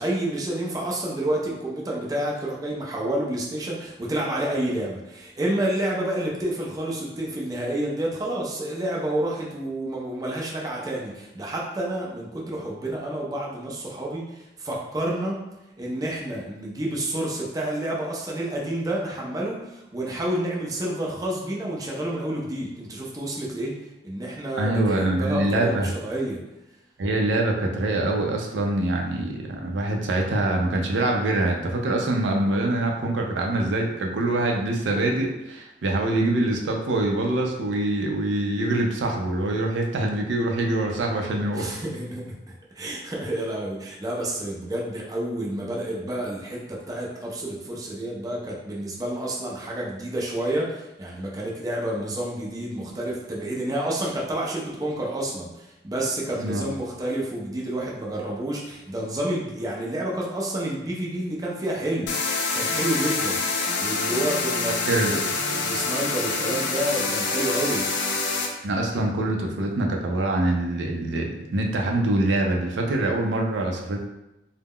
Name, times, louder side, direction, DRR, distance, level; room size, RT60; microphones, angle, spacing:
voice 1, 0.0-15.4 15.8-23.7 24.0-26.4 41.5-42.4 42.8-63.4 63.8-65.2 65.5-68.2, right 1 dB, 20° right, -3 dB, 0.4 m, -29 dB
voice 2, 24.6-25.9 27.0-41.7 56.4-56.6 64.8-65.2 68.6-74.0, right 2 dB, 80° right, 1 dB, 0.4 m, -24 dB
sound 1, 62.1-68.5, left 3 dB, 80° left, 0.4 m, -26 dB
2.2 x 2.0 x 3.5 m, 0.92 s
head